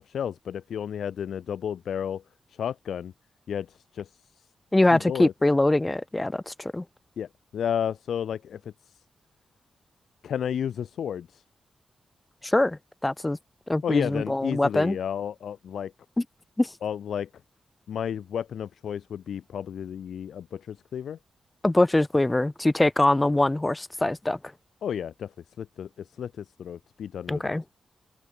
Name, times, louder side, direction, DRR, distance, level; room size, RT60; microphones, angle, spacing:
voice 1, 0.0-2.2 2.6-3.1 3.5-4.1 4.9-5.3 7.2-8.6 10.2-11.4 13.8-15.9 16.8-17.3 17.9-21.2 24.8-25.3 25.6-27.5, left 8 dB, 85° left, 2.5 m, -32 dB
voice 2, 4.7-6.8 12.5-13.4 13.7-15.0 16.6-16.7 21.6-24.4 27.3-27.6, left 2 dB, 10° left, 1.8 m, -23 dB
open air
wide cardioid pair, 160°, 0 cm